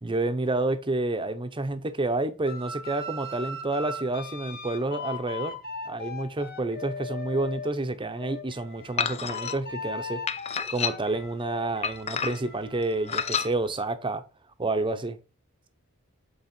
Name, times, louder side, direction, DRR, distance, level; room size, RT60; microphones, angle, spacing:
voice 1, 0.0-5.6 5.8-10.2 10.7-14.2 14.6-15.2, right 2 dB, 25° right, 0.8 m, -29 dB
sound 1, 2.5-7.7 8.2-13.5, left 3 dB, 45° left, 1.3 m, -39 dB
sound 2, 9.0-9.5 10.3-11.2 11.8-12.6 13.1-13.5, left 6 dB, 30° left, 0.5 m, -29 dB
8.4 x 4.2 x 4.4 m
head